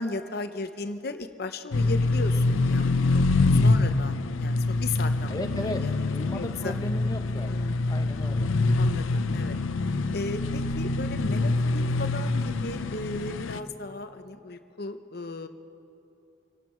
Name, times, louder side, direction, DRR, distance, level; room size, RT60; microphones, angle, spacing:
voice 1, 0.0-6.7 7.5-8.0 8.7-9.6 9.8-15.5, left 3 dB, 50° left, 8 dB, 0.8 m, -36 dB
sound 1, 1.7-13.6, left 3 dB, 85° left, 0.6 m, -25 dB
voice 2, 5.3-5.8 6.1-8.5, left 1 dB, 20° left, 5 dB, 0.9 m, -35 dB
27.0 x 12.0 x 4.5 m, 2.6 s
head